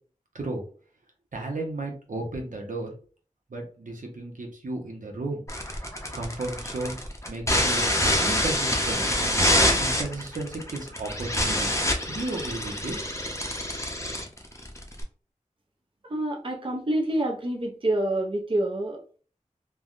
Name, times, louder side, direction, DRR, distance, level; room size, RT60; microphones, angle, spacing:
voice 1, 1.3-2.9 3.5-5.4 6.1-7.0 7.3-11.7 12.1-13.3, right 2 dB, 75° right, 1 dB, 0.7 m, -34 dB
sound 1, 5.5-15.0, left 1 dB, 20° left, 0.6 m, -26 dB
voice 2, 16.0-19.2, right 1 dB, 40° right, 0 dB, 0.6 m, -27 dB
3.3 x 2.1 x 2.4 m, 0.40 s
wide cardioid pair, 65°, 14 cm